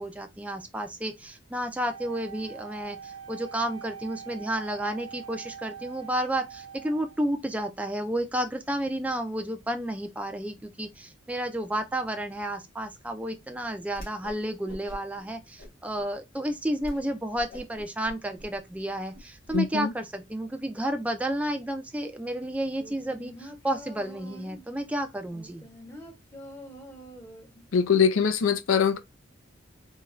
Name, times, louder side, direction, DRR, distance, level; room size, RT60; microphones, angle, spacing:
voice 1, 0.0-25.7, right 1 dB, 5° right, 0.3 m, -31 dB
Wind instrument woodwind instrument, 1.8-7.3, right 7 dB, 70° right, 0.7 m, -44 dB
Whoosh swoosh swish, 13.9-14.4 14.7-15.2 15.6-16.1 16.4-16.5 16.8-17.0 17.3-19.6, equal, 50° left, 1.7 m, -44 dB
voice 2, 19.5-19.9 27.7-29.0, left 6 dB, 85° left, 0.4 m, -22 dB
sound 1, 22.8-24.7 25.3-27.7 28.0-28.1, equal, 15° left, 0.7 m, -46 dB
3.6 x 2.3 x 3.0 m
head